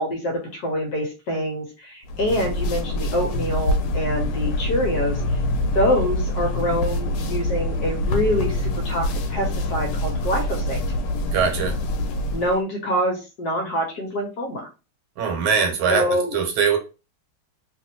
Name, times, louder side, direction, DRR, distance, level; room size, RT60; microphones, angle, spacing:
voice 1, 0.0-5.4 5.7-10.8 12.3-14.7 15.9-16.4, equal, 60° left, 1 dB, 1.1 m, -25 dB
sound 1, 2.0-12.6, left 1 dB, 85° left, 1.5 m, -25 dB
voice 2, 11.3-11.7 15.2-16.0 16.3-16.8, right 6 dB, 75° right, 4 dB, 1.6 m, -21 dB
3.2 x 2.7 x 2.7 m, 0.30 s
omnidirectional pair, 2.3 m